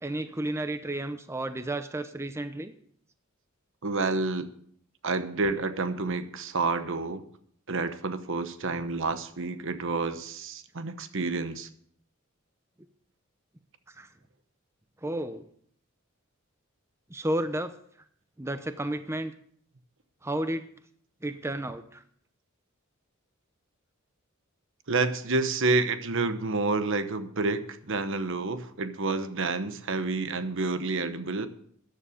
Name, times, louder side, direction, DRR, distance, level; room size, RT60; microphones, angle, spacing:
voice 1, 0.0-2.7 13.9-14.1 15.0-15.4 17.1-17.8 18.4-19.3 20.2-20.7 21.2-22.0, right 1 dB, 15° right, 10 dB, 0.6 m, -32 dB
voice 2, 3.8-4.5 5.0-7.2 7.7-11.7 24.9-31.5, right 3 dB, 65° right, 10 dB, 1.1 m, -29 dB
14.0 x 10.0 x 5.1 m, 0.62 s
head